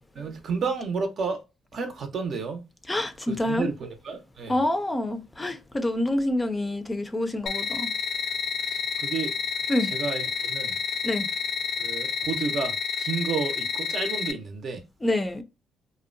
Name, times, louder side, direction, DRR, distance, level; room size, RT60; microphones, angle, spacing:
voice 1, 0.1-1.4 1.7-2.6 3.3-4.6 8.7-9.3 9.8-10.8 11.8-14.8, right 5 dB, 60° right, 0.6 m, -31 dB
voice 2, 2.9-3.7 4.5-7.9 9.7-9.9 11.0-11.3 15.0-15.4, left 1 dB, 15° left, 0.4 m, -27 dB
sound 1, 7.5-14.3, left 6 dB, 70° left, 0.4 m, -29 dB
2.6 x 2.1 x 2.5 m
cardioid pair, 90°, 0 cm